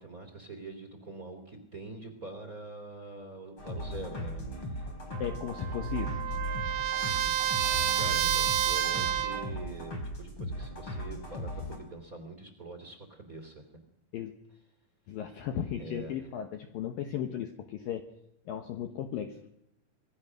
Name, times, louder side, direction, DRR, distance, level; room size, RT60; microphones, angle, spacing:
voice 1, 0.0-4.9 7.9-13.6 15.8-16.3, right 3 dB, 25° right, 6 dB, 2.6 m, -44 dB
sound 1, 3.6-11.8, equal, 30° left, 5.1 m, -37 dB
Trumpet, 5.1-9.5, right 12 dB, 70° right, 2.8 m, -30 dB
voice 2, 5.2-6.2 14.1-14.3 15.1-18.0 18.5-19.4, left 9 dB, 70° left, 7 dB, 2.3 m, -36 dB
26.0 x 20.5 x 6.4 m, 0.80 s
omnidirectional pair, 5.4 m